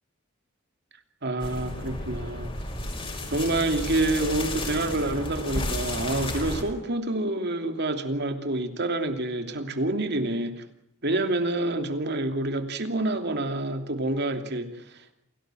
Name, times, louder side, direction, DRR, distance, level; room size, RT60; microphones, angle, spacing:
voice 1, 1.2-2.5 3.3-10.6 11.0-15.1, right 2 dB, 55° right, 7 dB, 2.8 m, -27 dB
sound 1, 1.4-6.6, left 1 dB, 25° left, 5.6 m, -32 dB
28.0 x 18.0 x 7.8 m, 0.79 s
head